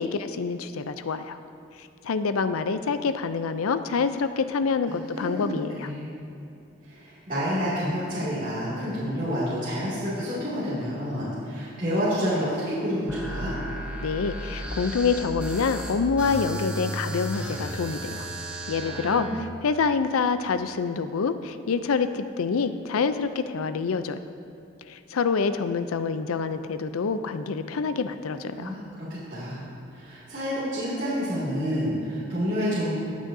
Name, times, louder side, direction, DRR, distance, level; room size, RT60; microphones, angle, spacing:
voice 1, 0.0-1.4 1.8-5.9 14.0-18.3 18.7-24.2 24.9-28.7, left 5 dB, 85° left, 11 dB, 0.5 m, -27 dB
voice 2, 4.9-6.1 6.8-13.5 18.8-19.4 28.5-29.6 29.9-32.9, equal, 40° right, -12 dB, 2.4 m, -29 dB
sound 1, 13.1-19.3, right 1 dB, 5° right, 0.7 m, -34 dB
19.0 x 6.3 x 2.7 m, 2.8 s
head